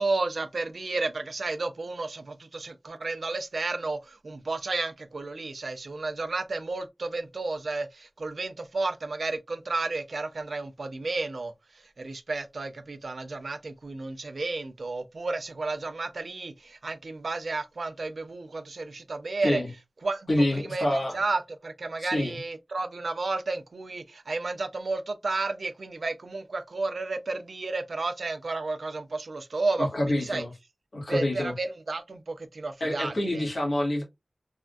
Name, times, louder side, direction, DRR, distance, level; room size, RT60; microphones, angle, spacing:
voice 1, 0.0-19.6 20.0-30.4 31.1-33.5, right 3 dB, 80° right, 0.4 m, -32 dB
voice 2, 20.3-21.2 22.0-22.4 29.8-30.5 30.9-31.5 32.8-34.0, left 1 dB, 70° left, 1.5 m, -27 dB
3.4 x 2.5 x 2.2 m
wide cardioid pair, 75°, 0 cm